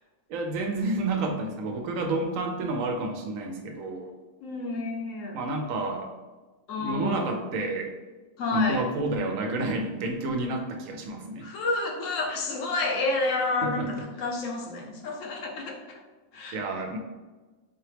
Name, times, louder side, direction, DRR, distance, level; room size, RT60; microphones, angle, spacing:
voice 1, 0.3-4.1 5.3-6.1 6.7-7.9 8.5-11.5 13.6-14.0 16.5-17.0, right 2 dB, 80° right, 3 dB, 1.0 m, -30 dB
voice 2, 4.4-5.4 6.7-7.3 8.4-8.9 11.4-15.8 16.3-16.6, left 2 dB, 75° left, 0 dB, 1.1 m, -30 dB
4.0 x 2.9 x 3.3 m, 1.2 s
omnidirectional pair, 1.4 m